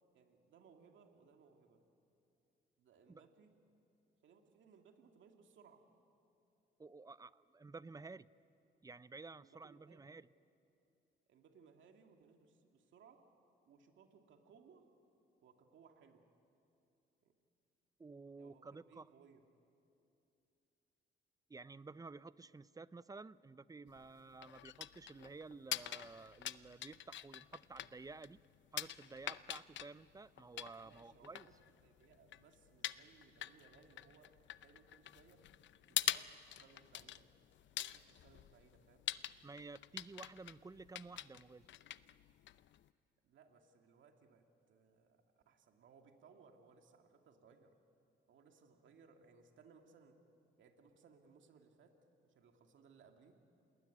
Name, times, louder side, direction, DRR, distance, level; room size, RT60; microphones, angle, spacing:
voice 1, 0.1-1.8 2.8-3.5 4.2-5.8 9.4-10.2 11.3-13.2 13.7-14.9 15.4-16.2 17.2-17.4 18.4-19.4 30.8-31.5 31.8-34.3 34.6-35.5 35.9-37.3 37.8-39.1 43.2-47.8 48.3-50.2 50.6-52.0 52.2-53.4, right 5 dB, 70° right, 4 dB, 2.3 m, -65 dB
voice 2, 6.8-8.3 8.8-10.3 18.0-19.1 21.5-28.4 28.7-31.5 39.4-41.7, right 3 dB, 20° right, 17 dB, 0.6 m, -53 dB
Metal rattling, 23.9-42.9, left 12 dB, 70° left, 0.7 m, -46 dB
29.0 x 20.0 x 9.3 m, 2.8 s
cardioid pair, 90°, 20 cm